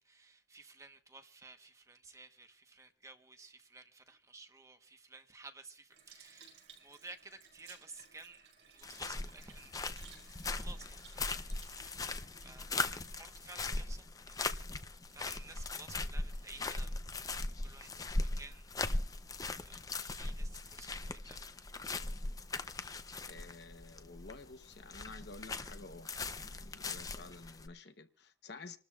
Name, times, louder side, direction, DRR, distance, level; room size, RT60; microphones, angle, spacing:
voice 1, 0.0-9.8 10.2-12.0 12.4-14.5 15.1-17.0 17.2-18.7 19.4-21.4, right 3 dB, 15° right, 1.1 m, -55 dB
Sink (filling or washing) / Liquid, 5.9-14.5 15.1-15.2, right 6 dB, 70° right, 5.0 m, -60 dB
sound 1, 8.8-27.7, left 3 dB, 20° left, 0.6 m, -39 dB
voice 2, 23.3-26.1 26.4-28.8, left 3 dB, 60° left, 1.0 m, -51 dB
28.0 x 13.0 x 2.4 m
head